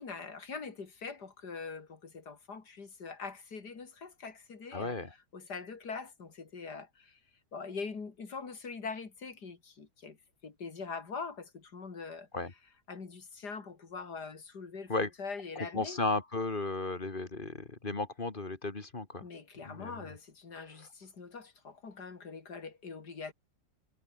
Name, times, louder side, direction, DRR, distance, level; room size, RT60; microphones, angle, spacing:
voice 1, 0.0-5.0 5.3-7.2 7.5-10.2 10.4-12.3 12.9-16.0 19.2-23.3, left 4 dB, 70° left, 3.3 m, -43 dB
voice 2, 4.7-5.1 12.3-12.5 14.9-15.1 15.7-19.2 19.7-20.0, left 3 dB, 30° left, 2.2 m, -34 dB
omnidirectional pair, 1.8 m